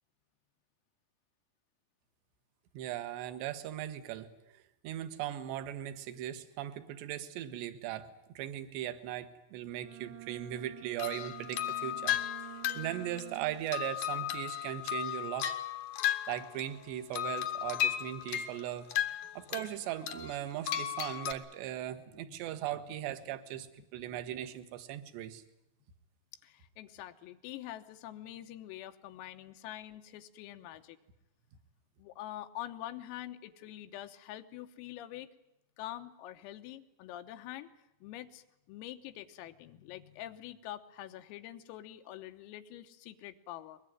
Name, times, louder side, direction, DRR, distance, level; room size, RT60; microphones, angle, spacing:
voice 1, 2.7-8.1 8.3-12.5 12.7-15.5 16.3-18.9 19.4-25.4, right 12 dB, 70° right, 10 dB, 3.1 m, -39 dB
Bowed string instrument, 9.7-13.8, right 17 dB, 90° right, 3.9 m, -49 dB
sound 1, 11.0-16.8 17.1-19.7 20.1-21.3, left 11 dB, 75° left, 1.9 m, -35 dB
voice 2, 21.9-22.4 23.6-23.7 26.4-31.0 32.0-35.3 35.8-37.7 38.0-43.8, left 13 dB, 90° left, 7 dB, 3.8 m, -45 dB
22.0 x 21.5 x 9.3 m, 0.86 s
omnidirectional pair, 5.9 m